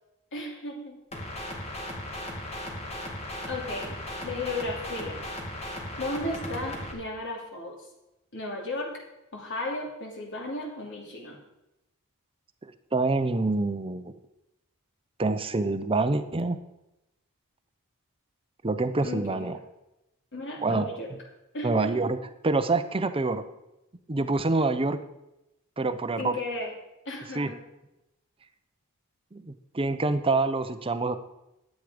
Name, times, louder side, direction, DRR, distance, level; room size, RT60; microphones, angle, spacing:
voice 1, 0.3-1.0 3.5-3.9 4.2-5.2 6.0-7.8 8.3-8.9 9.3-11.4 19.0-19.5 20.3-21.1 21.5-21.9 26.2-26.7 27.0-27.6, left 2 dB, 60° left, 0 dB, 2.7 m, -34 dB
sound 1, 1.1-6.9, left 1 dB, 30° left, 2.2 m, -37 dB
voice 2, 12.6-14.1 15.2-16.6 18.6-19.6 20.6-20.9 21.6-22.2 22.4-23.4 24.1-25.0 25.8-26.4 27.3-27.5 29.3-31.2, right 3 dB, 25° right, 10 dB, 0.7 m, -26 dB
11.5 x 8.5 x 5.1 m, 0.92 s
head